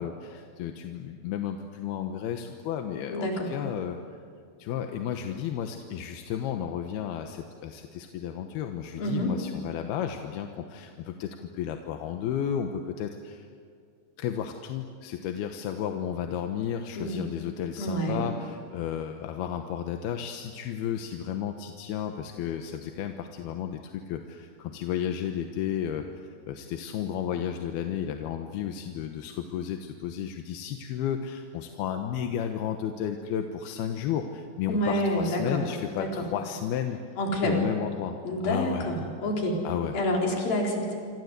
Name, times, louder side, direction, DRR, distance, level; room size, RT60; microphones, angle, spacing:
voice 1, 0.0-4.0 4.6-13.5 14.2-26.1 26.5-37.0 37.4-38.2 38.4-38.9 39.6-40.0, left 9 dB, 70° left, 5 dB, 2.8 m, -33 dB
voice 2, 3.1-3.5 9.0-9.4 17.0-17.2 17.8-18.2 34.7-35.6 35.9-36.2 37.2-37.7 38.2-39.6 39.9-40.9, equal, 55° left, 0 dB, 5.9 m, -28 dB
27.0 x 26.5 x 8.2 m, 2.3 s
omnidirectional pair, 5.1 m